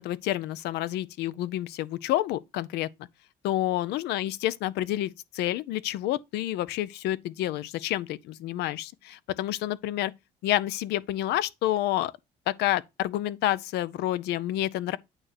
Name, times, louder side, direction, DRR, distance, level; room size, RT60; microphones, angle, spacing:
voice 1, 0.0-2.9 3.4-10.1 10.4-12.1 12.5-15.0, left 14 dB, 80° left, 0.5 m, -29 dB
8.8 x 3.0 x 6.5 m
cardioid pair, 110°, 17 cm